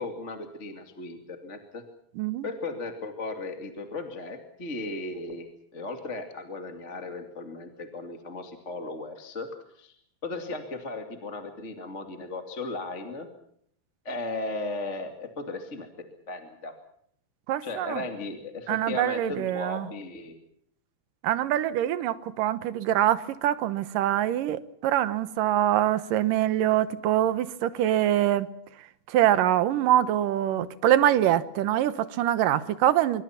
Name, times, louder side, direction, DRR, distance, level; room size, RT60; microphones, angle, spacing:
voice 1, 0.0-1.8 2.4-5.5 5.7-9.5 9.8-10.0 10.2-13.3 14.0-15.9 16.3-16.7 17.6-20.3, left 3 dB, 25° left, 2.2 m, -36 dB
voice 2, 17.5-18.0 18.7-19.9 21.2-28.5 29.1-33.2, right 12 dB, 70° right, 2.6 m, -24 dB
25.0 x 24.5 x 5.8 m
omnidirectional pair, 4.3 m